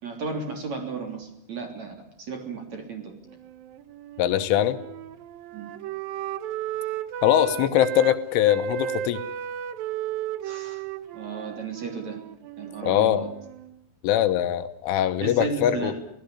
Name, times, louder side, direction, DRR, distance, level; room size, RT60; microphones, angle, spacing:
voice 1, 0.0-3.1 5.5-5.7 10.4-10.8 11.1-12.2 12.6-13.3 15.2-16.0, right 4 dB, 40° right, 4 dB, 3.9 m, -34 dB
Wind instrument woodwind instrument, 3.2-8.2 8.4-13.7, right 10 dB, 80° right, 2.0 m, -34 dB
voice 2, 4.2-4.8 7.2-9.2 12.9-13.3 14.0-15.9, left 11 dB, 80° left, 10 dB, 3.5 m, -22 dB
24.5 x 17.5 x 9.9 m, 0.78 s
omnidirectional pair, 5.7 m